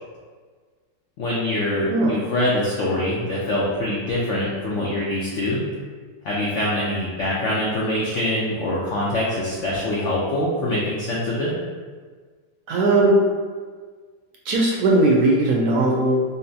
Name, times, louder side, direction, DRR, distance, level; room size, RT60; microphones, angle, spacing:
voice 1, 1.2-5.6 6.2-11.7, left 1 dB, 80° left, -6 dB, 0.6 m, -24 dB
voice 2, 12.7-13.2 14.4-16.4, right 2 dB, 70° right, -2 dB, 0.9 m, -18 dB
5.3 x 2.1 x 2.7 m, 1.6 s
omnidirectional pair, 2.0 m